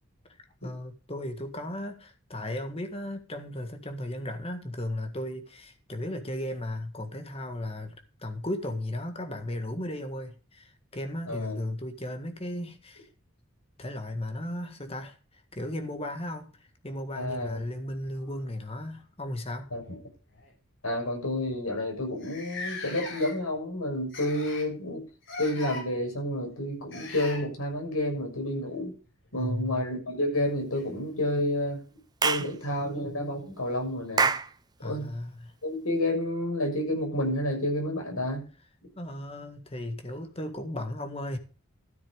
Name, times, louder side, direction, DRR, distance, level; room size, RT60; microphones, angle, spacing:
voice 1, 0.6-13.1 13.8-15.2 15.5-16.5 16.8-19.7 29.3-29.8 34.8-35.5 39.0-41.4, left 1 dB, 25° left, 1.7 m, -35 dB
voice 2, 11.3-11.6 17.2-17.6 19.7-20.0 20.8-25.0 25.4-28.9 29.3-31.8 32.2-34.3 34.8-35.1 35.6-38.5, left 1 dB, 85° left, 6.6 m, -30 dB
sound 1, 17.6-18.7 19.8-19.9 20.3-20.5 21.2-21.3 21.5-21.6 22.2-23.6 24.1-24.7 25.2-25.8 26.9-27.4 29.6-29.7 30.7-30.8, left 3 dB, 60° left, 5.3 m, -40 dB
Clapping / Chirp tweet, 32.2-32.5 34.2-34.5, right 5 dB, 20° right, 0.6 m, -24 dB
13.5 x 7.4 x 5.0 m
head